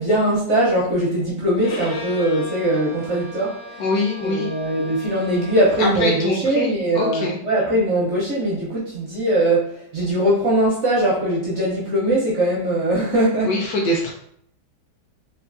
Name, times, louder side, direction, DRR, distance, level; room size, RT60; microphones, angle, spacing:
voice 1, 0.0-3.6 4.2-13.5, right 1 dB, 60° right, -6 dB, 0.8 m, -21 dB
Bowed string instrument, 1.6-6.1, left 3 dB, 90° left, 1.2 m, -37 dB
voice 2, 3.8-4.5 5.8-7.4 13.4-14.1, left 2 dB, 70° left, -1 dB, 1.0 m, -23 dB
3.0 x 2.4 x 2.4 m, 0.67 s
omnidirectional pair, 1.9 m